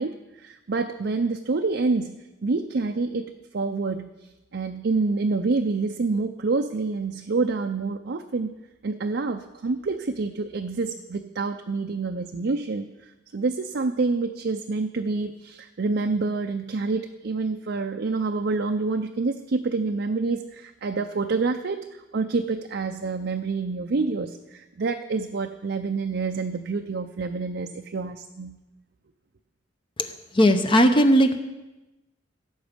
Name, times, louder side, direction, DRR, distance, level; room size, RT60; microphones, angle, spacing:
voice 1, 0.0-4.1 4.5-8.5 8.8-28.6, right 3 dB, 60° right, 6 dB, 0.5 m, -27 dB
voice 2, 30.3-31.4, equal, 25° left, 7 dB, 0.7 m, -17 dB
16.5 x 7.2 x 5.2 m, 1.1 s
head